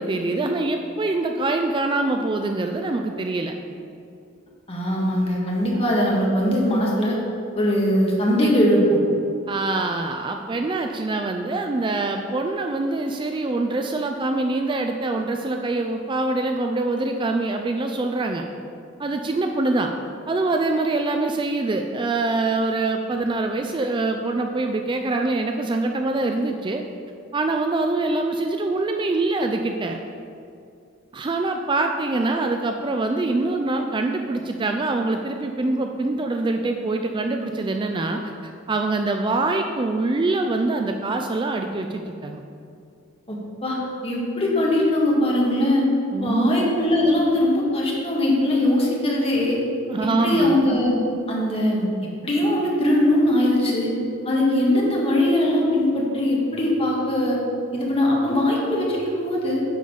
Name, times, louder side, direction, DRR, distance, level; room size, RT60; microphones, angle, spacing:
voice 1, 0.0-3.6 8.4-8.5 9.5-18.4 19.0-19.9 20.3-26.8 27.3-30.0 31.1-42.4 46.1-46.8 49.9-50.7, right 2 dB, 25° right, 4 dB, 0.4 m, -24 dB
voice 2, 4.7-7.2 7.6-9.0 43.3-43.8 44.0-45.8 46.2-49.6 50.0-50.9 51.3-51.9 52.2-53.9 54.3-57.4 57.7-59.6, left 1 dB, 30° left, -3 dB, 1.7 m, -21 dB
10.0 x 4.0 x 6.9 m, 2.5 s
head